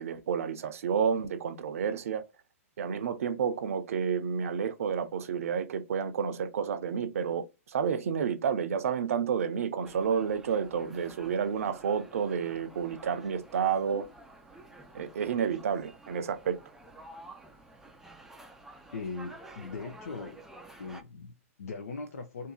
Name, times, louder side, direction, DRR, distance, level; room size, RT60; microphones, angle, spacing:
voice 1, 0.0-2.2 2.8-14.1 14.9-16.6, right 7 dB, 70° right, 0.6 m, -30 dB
sound 1, 9.8-21.0, right 2 dB, 5° right, 0.4 m, -51 dB
voice 2, 18.9-20.4 20.8-22.5, left 4 dB, 85° left, 0.6 m, -40 dB
2.7 x 2.6 x 3.7 m
hypercardioid pair, 135°, 8 cm